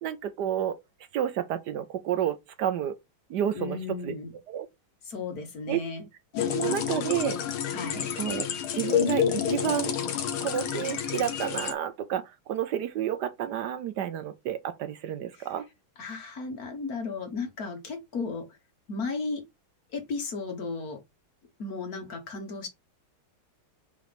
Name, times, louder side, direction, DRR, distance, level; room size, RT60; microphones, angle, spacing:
voice 1, 0.0-0.8 1.1-3.0 3.3-3.8 4.0-4.1 4.5-4.7 5.7-5.8 6.5-7.4 8.2-8.5 8.7-9.9 10.4-15.6, right 10 dB, 65° right, 1.1 m, -30 dB
voice 2, 3.5-4.3 5.0-6.1 6.3-6.8 7.7-8.1 15.3-15.5 16.0-18.6 18.9-19.4 19.9-21.0 21.6-22.7, left 4 dB, 50° left, 1.6 m, -35 dB
sound 1, 6.3-11.7, left 8 dB, 90° left, 1.9 m, -29 dB
4.9 x 3.8 x 5.1 m
omnidirectional pair, 2.2 m